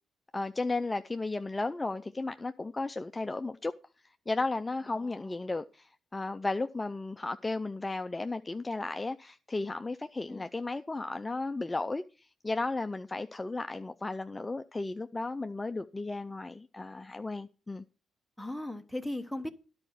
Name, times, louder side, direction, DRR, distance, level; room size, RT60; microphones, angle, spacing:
voice 1, 0.3-3.7 4.3-17.8, left 3 dB, 20° left, 0.4 m, -34 dB
voice 2, 5.0-5.3 10.3-10.5 18.4-19.5, left 1 dB, ahead, 1.0 m, -38 dB
10.5 x 5.0 x 7.3 m
cardioid pair, 90°, 0 cm